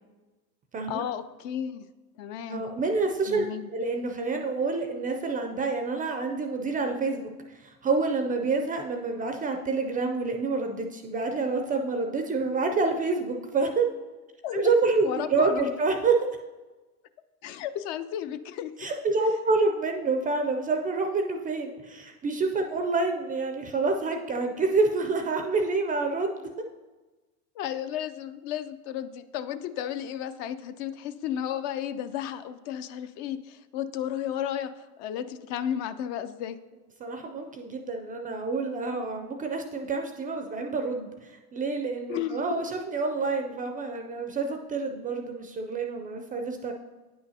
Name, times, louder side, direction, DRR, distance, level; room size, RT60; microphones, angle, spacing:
voice 1, 0.9-1.9 2.2-2.6 3.3-3.7 14.4-14.7 15.0-15.7 17.4-18.7 27.6-36.6 42.1-42.6, left 10 dB, 55° left, 12 dB, 0.5 m, -33 dB
voice 2, 2.5-3.5 3.7-7.3 7.6-13.9 14.5-16.3 18.8-26.3 37.0-46.7, right 3 dB, 20° right, 5 dB, 0.3 m, -28 dB
9.3 x 5.7 x 2.7 m, 1.2 s
hypercardioid pair, 95°, 45 cm